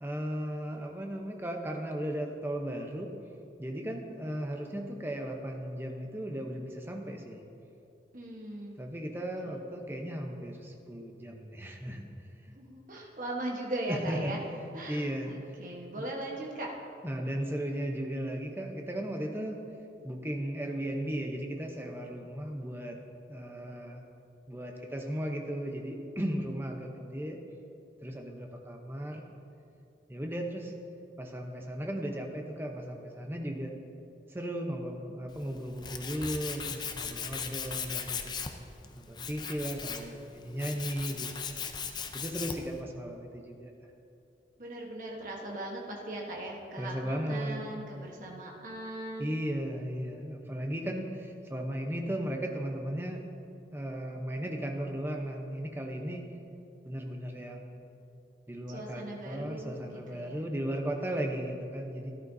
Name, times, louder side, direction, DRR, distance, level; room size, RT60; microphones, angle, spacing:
voice 1, 0.0-3.1 3.6-7.4 8.8-12.0 13.9-14.3 14.9-15.3 16.0-16.1 17.0-19.6 20.0-23.0 23.3-24.0 24.5-27.4 28.0-29.3 30.1-30.7 31.2-33.7 34.3-38.4 38.9-41.3 42.1-43.7 46.8-47.6 49.2-53.2 53.7-56.3 56.8-57.8 58.5-62.1, right 1 dB, 15° right, 2 dB, 0.8 m, -36 dB
voice 2, 8.1-8.8 9.4-9.5 12.5-14.4 14.7-16.7 44.6-49.3 58.7-60.5, right 1 dB, 45° right, -2 dB, 1.2 m, -39 dB
Tools, 35.3-42.8, left 6 dB, 25° left, 0.5 m, -38 dB
13.5 x 11.0 x 2.7 m, 2.7 s
head